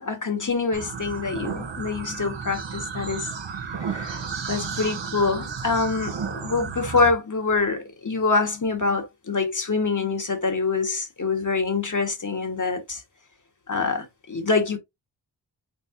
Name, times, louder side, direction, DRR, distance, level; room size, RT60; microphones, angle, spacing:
voice 1, 0.0-3.3 3.7-4.2 4.5-13.0 13.7-14.8, left 4 dB, 40° left, 1.6 m, -25 dB
sound 1, 0.7-7.1, right 6 dB, 70° right, 1.3 m, -33 dB
4.5 x 4.0 x 2.7 m
cardioid pair, 45°, 46 cm